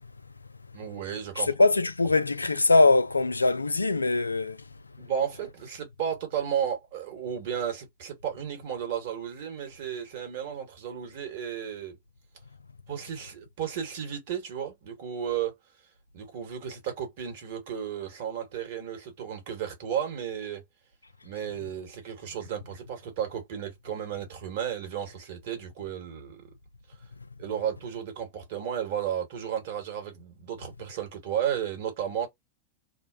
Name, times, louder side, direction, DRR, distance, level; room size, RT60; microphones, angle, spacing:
voice 1, 0.7-1.5 5.0-12.0 12.9-15.6 16.1-20.6 21.2-26.5 27.4-32.3, right 9 dB, 55° right, 1.5 m, -33 dB
voice 2, 1.6-4.6, left 3 dB, 85° left, 0.3 m, -22 dB
2.9 x 2.1 x 2.5 m
figure-of-eight pair, 90°, 0 cm